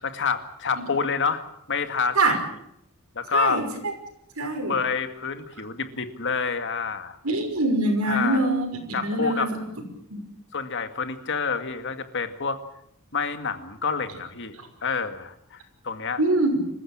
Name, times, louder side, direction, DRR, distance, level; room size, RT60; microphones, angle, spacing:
voice 1, 0.0-1.4 1.7-2.4 3.1-3.6 4.7-7.2 8.1-8.4 8.9-9.5 10.5-12.6 13.1-16.2, left 5 dB, 60° left, 8 dB, 2.1 m, -28 dB
voice 2, 3.3-3.9 4.4-4.7 7.2-9.5 10.1-10.3 14.6-14.7 16.2-16.6, right 2 dB, 85° right, 5 dB, 5.9 m, -24 dB
26.5 x 15.0 x 8.9 m, 0.75 s
head